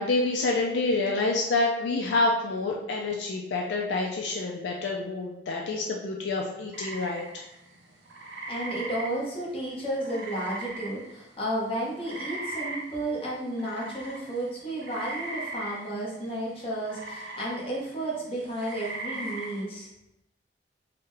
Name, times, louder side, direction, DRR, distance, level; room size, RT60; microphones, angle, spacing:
voice 1, 0.0-7.4, left 3 dB, 70° left, 0 dB, 0.4 m, -27 dB
sound 1, 6.7-11.4 11.7-19.6, right 2 dB, 65° right, 0.5 m, -39 dB
voice 2, 8.5-19.9, right 1 dB, 30° left, -6 dB, 0.9 m, -32 dB
3.7 x 2.2 x 3.2 m, 0.86 s
head